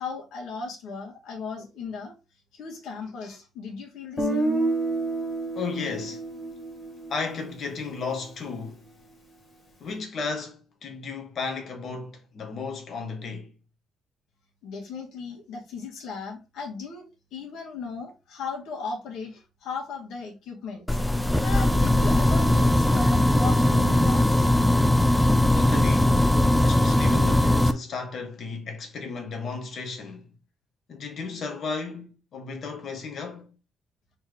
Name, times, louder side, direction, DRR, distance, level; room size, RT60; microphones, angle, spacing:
voice 1, 0.0-2.1 2.5-4.5 14.6-17.0 17.3-20.9 21.4-24.4, left 5 dB, 85° left, 1.9 m, -36 dB
Guitar, 4.2-8.1, right 2 dB, 30° left, 2.0 m, -29 dB
voice 2, 5.5-6.2 7.1-8.8 9.8-13.5 25.3-30.3 30.9-33.5, left 4 dB, 50° left, 1.4 m, -34 dB
sound 1, 20.9-27.7, left 1 dB, 5° left, 0.4 m, -20 dB
4.4 x 3.2 x 3.8 m
cardioid pair, 135°, 0 cm